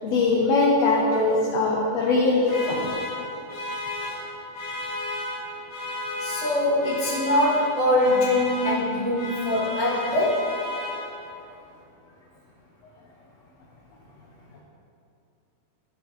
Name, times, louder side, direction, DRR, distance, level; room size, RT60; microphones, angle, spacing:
voice 1, 0.0-2.9, left 3 dB, 80° left, -3 dB, 1.5 m, -21 dB
sound 1, 2.4-11.5, left 2 dB, 60° left, 2.0 m, -33 dB
voice 2, 6.2-10.6, left 1 dB, 80° right, -10 dB, 0.6 m, -23 dB
13.0 x 6.1 x 3.1 m, 2.6 s
omnidirectional pair, 3.9 m